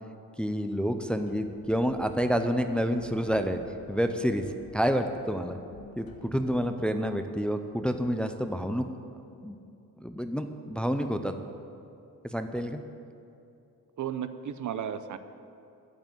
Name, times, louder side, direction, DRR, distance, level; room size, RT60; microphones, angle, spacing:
voice 1, 0.4-3.6 3.9-4.4 4.7-5.6 6.0-8.8 9.4-9.6 10.0-11.3 12.2-12.8, equal, 5° left, 7 dB, 0.6 m, -28 dB
sound 1, 1.1-6.8, left 3 dB, 90° left, 1.7 m, -52 dB
voice 2, 14.0-15.2, right 9 dB, 60° right, 11 dB, 0.7 m, -34 dB
11.5 x 9.0 x 7.8 m, 2.7 s
cardioid pair, 130°, 34 cm